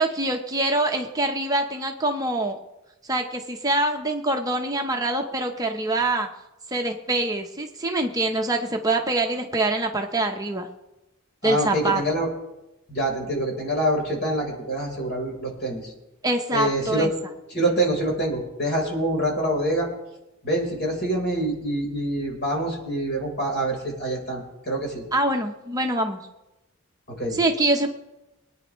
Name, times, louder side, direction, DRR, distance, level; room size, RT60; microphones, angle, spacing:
voice 1, 0.0-2.6 3.0-6.3 6.7-10.7 11.4-12.0 16.2-17.1 25.1-26.2 27.3-27.9, right 2 dB, 15° right, 2 dB, 0.8 m, -24 dB
voice 2, 11.4-12.3 12.9-15.9 16.5-17.1 17.5-19.9 20.4-25.0 27.2-27.4, right 1 dB, 50° left, -1 dB, 4.1 m, -26 dB
24.0 x 9.4 x 3.1 m, 0.97 s
head